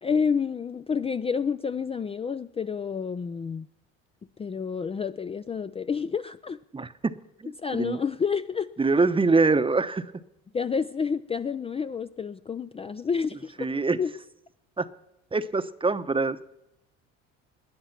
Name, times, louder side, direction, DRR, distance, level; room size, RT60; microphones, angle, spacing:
voice 1, 0.0-3.7 4.4-6.6 7.6-8.7 10.5-13.7 14.0-14.1, left 6 dB, 20° left, 11 dB, 0.4 m, -29 dB
voice 2, 6.7-7.1 7.4-8.0 8.8-10.1 13.6-14.0 14.8-14.9 15.3-16.4, right 3 dB, 15° right, 12 dB, 0.9 m, -24 dB
20.0 x 9.9 x 5.9 m, 0.89 s
supercardioid pair, 80°, 30 cm